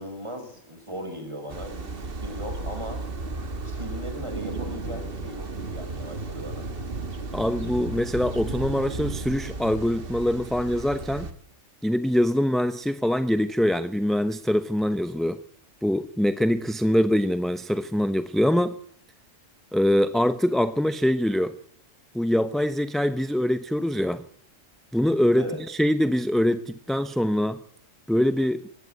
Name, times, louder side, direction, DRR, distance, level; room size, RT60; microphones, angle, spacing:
voice 1, 0.0-3.0 3.6-6.7 25.4-25.6, equal, 20° right, 5 dB, 6.2 m, -38 dB
sound 1, 1.5-11.3, right 3 dB, 45° right, 1.8 m, -34 dB
voice 2, 7.3-11.3 11.8-15.4 15.8-18.8 19.7-21.5 22.1-24.2 24.9-27.6 28.1-28.7, equal, ahead, 11 dB, 0.8 m, -24 dB
20.5 x 16.5 x 9.6 m, 0.65 s
omnidirectional pair, 1.3 m